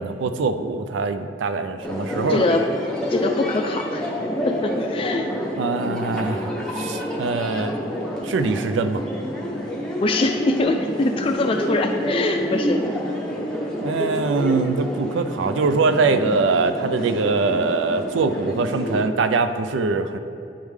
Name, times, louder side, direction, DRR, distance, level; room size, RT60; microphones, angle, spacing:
voice 1, 0.0-2.5 5.6-6.5 6.8-7.7 8.2-9.0 13.8-20.2, right 4 dB, 90° right, 10 dB, 0.4 m, -23 dB
sound 1, 1.8-19.0, equal, 5° left, 0.7 m, -28 dB
voice 2, 2.3-2.7 3.1-4.1 4.4-5.3 10.0-12.8, left 2 dB, 30° left, 4 dB, 0.3 m, -23 dB
10.0 x 3.5 x 3.2 m, 2.8 s
head